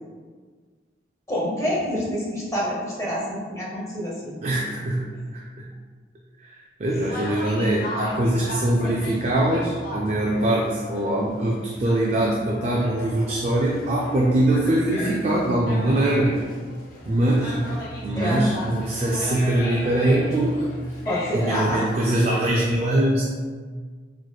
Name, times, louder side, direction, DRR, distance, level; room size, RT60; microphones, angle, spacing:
voice 1, 1.3-4.4 6.9-7.1 18.1-18.4 21.0-21.8, equal, 20° left, -5 dB, 0.7 m, -27 dB
voice 2, 4.4-5.7 6.4-16.4 17.1-17.7 18.0-20.6 21.3-23.2, right 1 dB, 35° right, -3 dB, 0.3 m, -22 dB
Conversation, 7.0-22.0, left 1 dB, 55° left, 0.8 m, -36 dB
4.1 x 3.0 x 2.2 m, 1.6 s
head